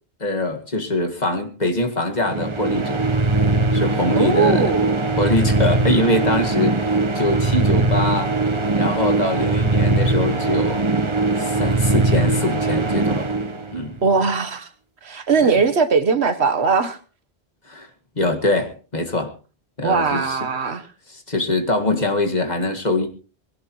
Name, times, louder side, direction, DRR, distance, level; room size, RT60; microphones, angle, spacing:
voice 1, 0.2-3.0 3.7-4.7 5.2-8.3 8.8-10.9 11.4-13.3 13.7-14.0 15.4-15.6 17.7-17.9 18.2-19.3 19.8-20.4 21.1-23.1, left 2 dB, 40° left, 2.1 m, -23 dB
sound 1, 2.2-14.1, right 2 dB, 30° right, 1.1 m, -20 dB
voice 2, 4.1-5.0 14.0-14.7 15.0-17.0 19.8-20.9, right 5 dB, 85° right, 1.5 m, -20 dB
20.5 x 17.5 x 3.1 m
omnidirectional pair, 1.1 m